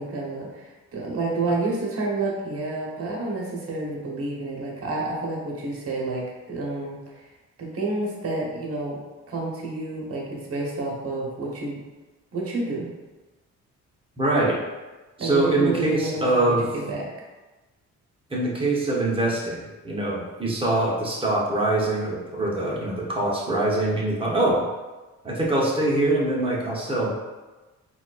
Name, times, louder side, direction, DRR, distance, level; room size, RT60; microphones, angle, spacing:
voice 1, 0.0-7.2 7.6-9.0 9.3-11.8 12.3-12.9 15.2-17.1, right 3 dB, 50° right, -2 dB, 1.0 m, -29 dB
voice 2, 14.2-14.6 15.2-16.6 18.3-24.7 25.2-27.1, right 2 dB, 20° right, -4 dB, 0.9 m, -23 dB
4.0 x 2.4 x 2.4 m, 1.2 s
cardioid pair, 90°, 30 cm